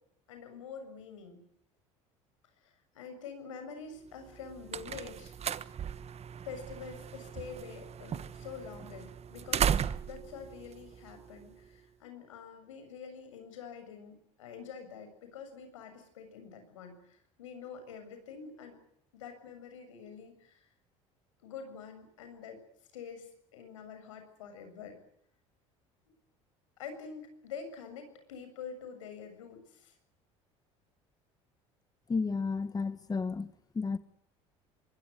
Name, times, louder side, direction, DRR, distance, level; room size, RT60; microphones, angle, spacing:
voice 1, 0.3-1.4 2.6-5.4 6.4-9.7 10.0-18.8 19.1-20.7 21.4-22.6 22.9-25.0 26.8-29.9, left 6 dB, 90° left, 7.3 m, -46 dB
sound 1, 4.2-11.7, right 8 dB, 40° right, 1.4 m, -36 dB
voice 2, 32.1-34.0, left 4 dB, 25° left, 1.7 m, -32 dB
25.0 x 23.0 x 8.2 m
hypercardioid pair, 75°, 16 cm